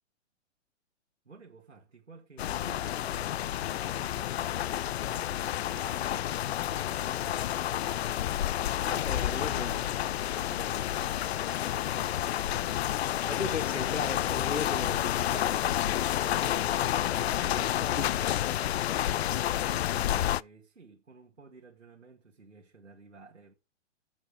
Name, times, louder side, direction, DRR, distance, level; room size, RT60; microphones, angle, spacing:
voice 1, 1.3-8.9 10.3-11.4 11.9-12.8 16.8-17.8 19.4-23.5, right 4 dB, 85° right, 2.2 m, -53 dB
sound 1, 2.4-20.4, left 12 dB, 60° left, 0.5 m, -30 dB
voice 2, 8.9-9.9 13.3-16.8 17.5-18.4, left 4 dB, 85° left, 1.6 m, -38 dB
8.3 x 7.6 x 4.8 m
figure-of-eight pair, 115°, 36 cm